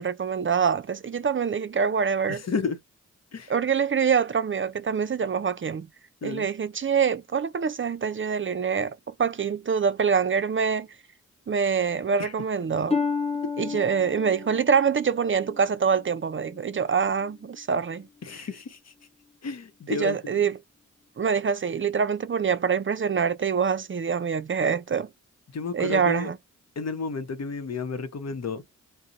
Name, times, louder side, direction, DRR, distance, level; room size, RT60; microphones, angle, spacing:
voice 1, 0.0-2.4 3.5-5.9 6.2-8.9 9.2-10.9 11.5-13.0 13.6-18.1 19.9-20.5 21.2-25.1 25.7-26.4, right 6 dB, 40° right, 0.5 m, -25 dB
voice 2, 2.3-2.8 3.3-3.5 6.2-6.5 12.2-12.3 13.4-13.5 18.2-18.9 19.4-20.5 25.5-26.3 26.8-28.6, left 4 dB, 55° left, 0.8 m, -32 dB
Harp, 12.9-16.6 17.2-17.6 18.2-18.3, left 5 dB, 20° left, 0.7 m, -32 dB
2.6 x 2.1 x 3.6 m
cardioid pair, 50°, 31 cm